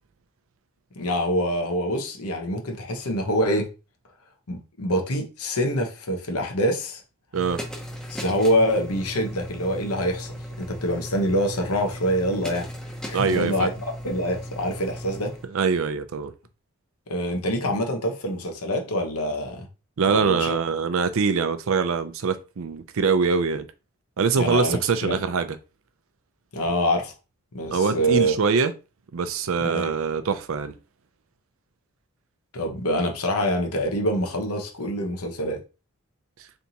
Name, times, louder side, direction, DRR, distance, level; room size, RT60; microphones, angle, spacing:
voice 1, 1.0-3.7 4.5-7.0 8.1-12.7 13.1-13.7 14.0-15.4 17.1-19.7 20.1-20.6 24.4-25.2 26.5-27.1 27.5-28.3 29.6-29.9 32.5-35.6, equal, 85° left, 1.0 m, -25 dB
sound 1, 7.3-15.4, equal, 5° left, 0.6 m, -37 dB
voice 2, 13.1-13.7 15.5-16.3 20.0-23.7 24.2-25.6 27.7-28.7 29.1-30.7, right 5 dB, 65° right, 0.5 m, -23 dB
4.0 x 3.4 x 2.8 m
head